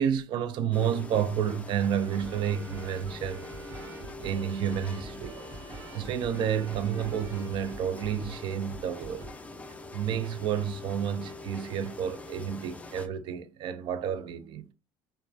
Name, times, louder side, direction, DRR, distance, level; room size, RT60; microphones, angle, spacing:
voice 1, 0.0-3.9 4.2-5.4 5.9-9.3 9.9-14.7, right 8 dB, 60° right, 0.3 m, -30 dB
sound 1, 0.7-13.1, left 3 dB, 15° left, 0.4 m, -44 dB
sound 2, 1.9-9.3, right 2 dB, 80° right, 0.8 m, -45 dB
2.3 x 2.1 x 2.5 m
cardioid pair, 110°, 9 cm